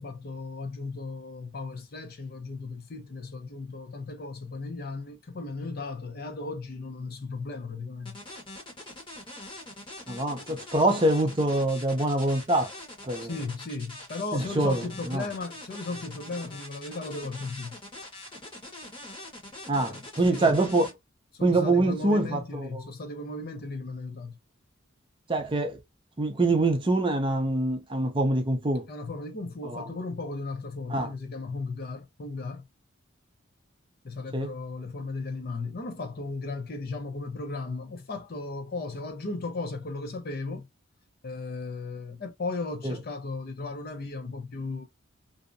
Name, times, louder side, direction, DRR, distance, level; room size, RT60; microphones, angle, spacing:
voice 1, 0.0-8.2 13.2-17.8 19.9-20.6 21.3-24.4 28.9-32.7 34.0-40.7 41.2-44.8, left 3 dB, 45° left, 0.5 m, -36 dB
sound 1, 8.0-20.9, left 1 dB, 25° left, 1.1 m, -43 dB
voice 2, 10.1-12.7 13.0-13.3 14.3-14.8 15.1-15.2 19.7-20.9 21.4-22.7 25.3-25.8 26.2-28.9 29.6-29.9 30.9-31.1 34.3-34.5 42.8-42.9, right 2 dB, 25° right, 0.5 m, -25 dB
2.6 x 2.0 x 2.5 m
head